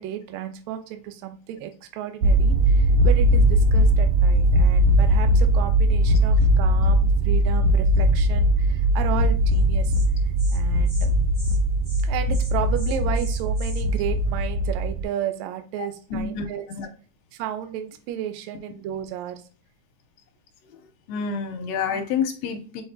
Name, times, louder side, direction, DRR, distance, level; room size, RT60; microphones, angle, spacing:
voice 1, 0.0-9.9 10.5-11.1 12.0-16.7 17.3-19.4 21.9-22.1, right 10 dB, 75° right, 8 dB, 1.8 m, -33 dB
sound 1, 2.2-15.0, right 1 dB, 90° right, 1.4 m, -19 dB
Insect, 9.5-9.6 9.9-10.1 10.4-10.6 10.9-11.1 11.3-11.6 11.8-12.0 12.3-13.8, equal, 20° right, 0.7 m, -43 dB
voice 2, 15.8-16.9 20.6-22.8, left 6 dB, 75° left, 5 dB, 1.8 m, -29 dB
5.7 x 3.4 x 2.7 m, 0.40 s
omnidirectional pair, 3.6 m